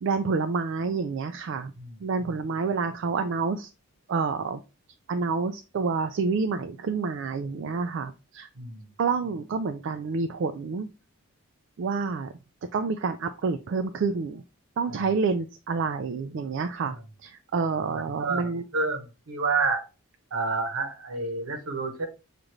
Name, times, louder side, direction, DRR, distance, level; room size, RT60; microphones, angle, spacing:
voice 1, 0.0-1.7 2.0-3.7 4.1-4.6 5.1-8.5 9.0-10.9 11.8-12.3 12.7-14.4 14.8-17.0 17.2-18.6, right 4 dB, 55° right, 8 dB, 0.3 m, -28 dB
voice 2, 8.6-8.9 14.9-15.0 17.9-19.8 20.3-22.1, right 4 dB, 70° right, 6 dB, 0.9 m, -29 dB
6.3 x 2.5 x 3.0 m, 0.30 s
head